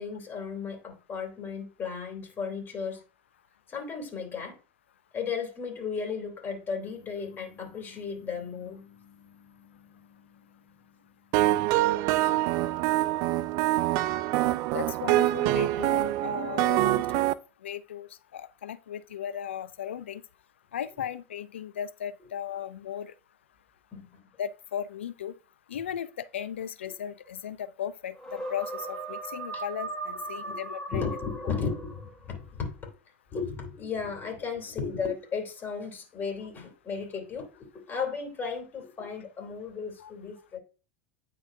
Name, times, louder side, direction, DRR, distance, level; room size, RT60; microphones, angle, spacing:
voice 1, 0.0-3.0 3.7-4.6 5.1-8.8 23.9-24.2 29.5-29.6 30.4-30.6 30.9-32.7 33.3-40.6, left 5 dB, 30° left, 2.9 m, -35 dB
sound 1, 6.8-12.1, left 8 dB, 60° left, 2.2 m, -57 dB
sound 2, 11.3-17.3, right 15 dB, 55° right, 0.4 m, -25 dB
voice 2, 14.7-17.2 17.6-20.2 20.7-23.1 24.4-25.4 25.7-31.1 40.0-40.1, left 9 dB, 85° left, 0.5 m, -36 dB
sound 3, 28.2-32.3, right 2 dB, 5° left, 3.9 m, -38 dB
10.0 x 3.9 x 2.6 m
hypercardioid pair, 90°, 6 cm